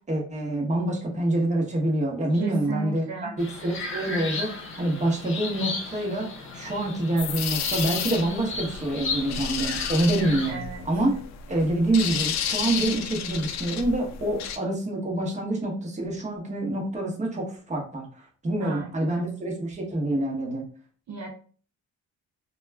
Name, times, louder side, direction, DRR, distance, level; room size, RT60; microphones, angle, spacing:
voice 1, 0.1-11.1 11.5-20.6, right 1 dB, 25° right, -1 dB, 0.9 m, -26 dB
voice 2, 2.3-3.4 10.5-10.8 18.6-19.3 21.1-21.3, right 4 dB, 60° right, 0 dB, 0.6 m, -35 dB
sound 1, 3.4-10.5, left 3 dB, 45° left, 0.8 m, -35 dB
sound 2, 7.2-14.6, left 8 dB, 65° left, 0.5 m, -32 dB
2.2 x 2.2 x 3.3 m, 0.42 s
cardioid pair, 90°, 30 cm